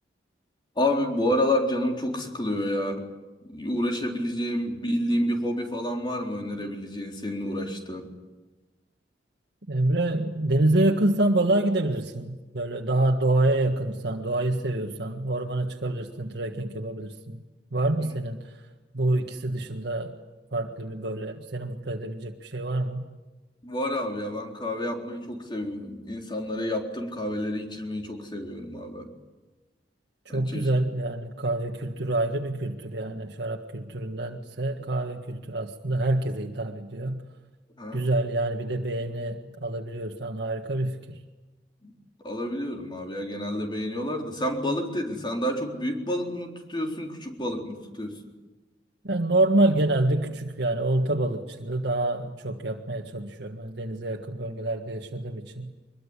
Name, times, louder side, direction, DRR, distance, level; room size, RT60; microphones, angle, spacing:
voice 1, 0.8-3.0 3.4-8.1 23.6-29.1 30.3-30.7 37.8-38.1 41.8-41.9 42.2-48.2, left 1 dB, 25° left, 2 dB, 4.0 m, -29 dB
voice 2, 9.7-17.4 17.7-18.4 18.9-20.1 20.5-23.1 30.2-37.2 37.9-41.2 49.0-55.7, right 2 dB, 70° right, 1 dB, 1.7 m, -27 dB
24.0 x 22.0 x 9.9 m, 1.2 s
head